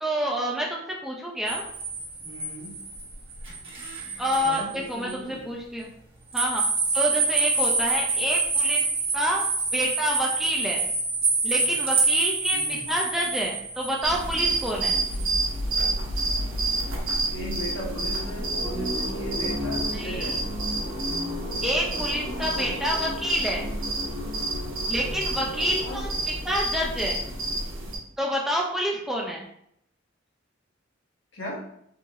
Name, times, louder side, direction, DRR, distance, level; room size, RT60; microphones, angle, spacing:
voice 1, 0.0-1.7 4.2-5.9 6.3-6.6 6.9-8.8 9.1-9.4 9.7-10.9 11.4-15.0 19.9-20.4 21.6-23.6 24.9-26.1 26.4-27.2 28.2-29.5, equal, ahead, -2 dB, 0.4 m, -28 dB
sound 1, 1.5-4.7 5.1-5.2 6.3-15.4, right 3 dB, 30° right, 1.2 m, -27 dB
voice 2, 2.2-2.7 4.4-5.4 12.5-12.8 17.3-20.4 22.4-22.7 25.4-26.1 31.3-31.6, equal, 65° left, -4 dB, 1.3 m, -37 dB
sound 2, 14.0-28.0, right 2 dB, 85° right, 1.2 m, -29 dB
4.6 x 2.6 x 3.0 m, 0.71 s
head